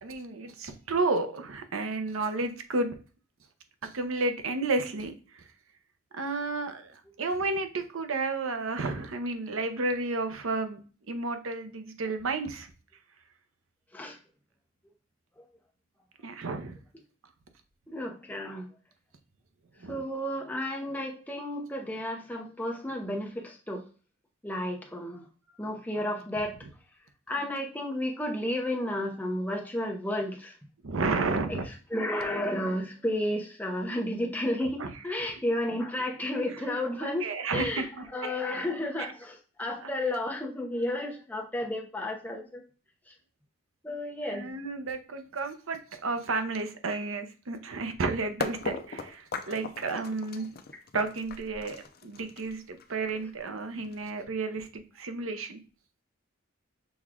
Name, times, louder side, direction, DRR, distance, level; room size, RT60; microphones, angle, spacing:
voice 1, 0.0-2.9 3.8-5.4 6.1-10.8 11.1-12.7 16.2-16.8 19.8-20.0 30.8-31.7 34.8-34.9 35.2-35.4 37.0-38.1 39.8-39.9 44.2-50.5 50.9-51.8 52.0-55.6, right 3 dB, 80° right, 8 dB, 0.7 m, -32 dB
voice 2, 17.9-18.7 19.9-23.8 24.4-25.2 25.6-26.6 27.3-30.6 31.5-31.6 31.9-42.6 43.1-43.2 43.8-44.5, left 1 dB, 10° left, 1 dB, 0.8 m, -32 dB
sound 1, 48.4-54.2, left 4 dB, 50° left, 0.5 m, -38 dB
6.3 x 2.3 x 3.6 m, 0.38 s
head